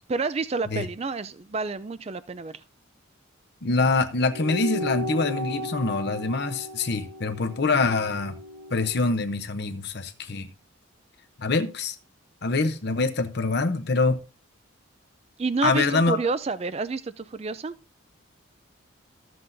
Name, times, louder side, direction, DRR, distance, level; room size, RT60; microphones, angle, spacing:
voice 1, 0.1-2.6 15.4-17.8, right 4 dB, 30° right, 0.4 m, -29 dB
voice 2, 3.6-8.3 8.7-10.5 11.4-11.9 12.4-14.2 15.6-16.2, left 3 dB, 50° left, 0.7 m, -25 dB
sound 1, 4.3-9.1, left 1 dB, 75° right, 1.8 m, -35 dB
14.0 x 7.8 x 2.6 m
head